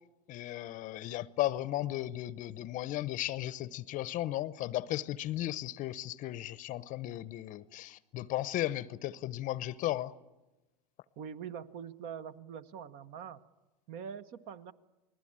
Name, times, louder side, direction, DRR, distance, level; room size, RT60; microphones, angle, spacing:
voice 1, 0.3-10.1, left 14 dB, 40° left, 0.8 m, -35 dB
voice 2, 11.2-13.4 13.9-14.7, right 7 dB, 45° right, 1.2 m, -43 dB
28.5 x 20.0 x 8.8 m
hypercardioid pair, 110°, 21 cm